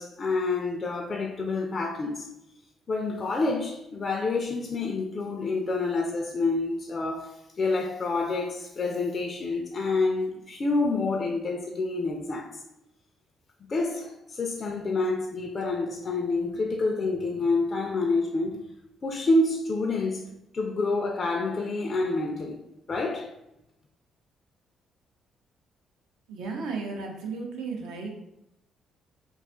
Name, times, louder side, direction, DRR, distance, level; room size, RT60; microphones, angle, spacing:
voice 1, 0.0-2.3 2.9-12.6 13.7-18.6 19.0-20.2 20.5-22.6 22.9-23.3, left 3 dB, 40° left, 0.3 m, -28 dB
voice 2, 26.3-28.1, right 4 dB, 90° right, 0.6 m, -34 dB
2.4 x 2.3 x 3.5 m
cardioid pair, 90°, 0 cm